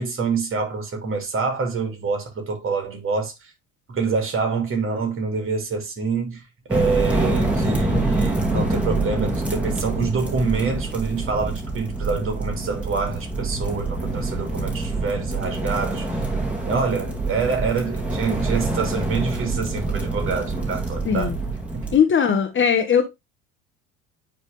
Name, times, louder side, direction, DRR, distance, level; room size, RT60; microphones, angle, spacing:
voice 1, 0.0-3.5 3.9-6.4 6.7-16.0 16.6-21.3 21.7-21.9, right 4 dB, 35° right, 2.8 m, -26 dB
sound 1, 6.7-22.0, right 2 dB, 5° right, 2.4 m, -26 dB
voice 2, 21.0-21.4 21.9-23.0, left 7 dB, 30° left, 1.2 m, -19 dB
9.1 x 3.5 x 3.4 m
hypercardioid pair, 70°, 38 cm